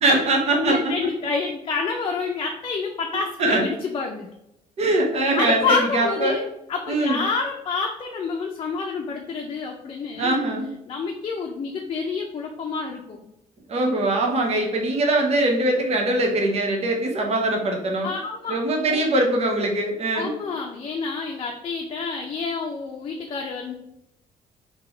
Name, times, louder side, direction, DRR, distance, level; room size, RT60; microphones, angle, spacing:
voice 1, 0.0-0.9 3.4-3.7 4.8-6.4 6.9-7.2 10.1-10.7 13.7-18.1 18.5-20.3, right 2 dB, 45° right, 1 dB, 1.0 m, -22 dB
voice 2, 0.6-4.3 5.4-6.4 6.7-10.4 10.9-13.2 18.0-18.5 18.8-19.0 20.1-23.7, left 4 dB, 40° left, 1 dB, 0.6 m, -28 dB
3.7 x 2.9 x 4.4 m, 0.82 s
cardioid pair, 110°, 14 cm